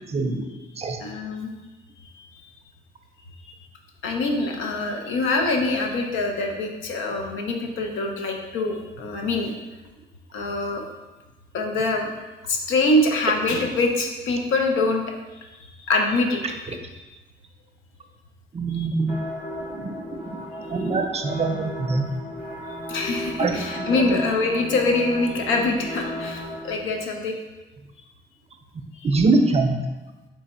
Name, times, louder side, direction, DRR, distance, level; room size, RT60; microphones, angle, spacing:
voice 1, 0.1-0.4 0.8-1.0 18.5-19.1 19.7-19.9 20.7-22.1 23.4-23.5 29.0-29.8, right 3 dB, 30° right, 5 dB, 0.5 m, -23 dB
voice 2, 1.0-1.5 2.0-2.6 4.0-9.6 10.3-10.8 11.5-12.1 12.5-15.0 15.4-16.7 18.7-18.9 20.7-20.9 22.7-27.4 28.9-29.2, left 2 dB, 85° left, 2 dB, 0.7 m, -24 dB
sound 1, 19.1-26.7, left 1 dB, 55° left, 1.4 m, -35 dB
3.4 x 3.3 x 4.2 m, 1.1 s
cardioid pair, 90°, 20 cm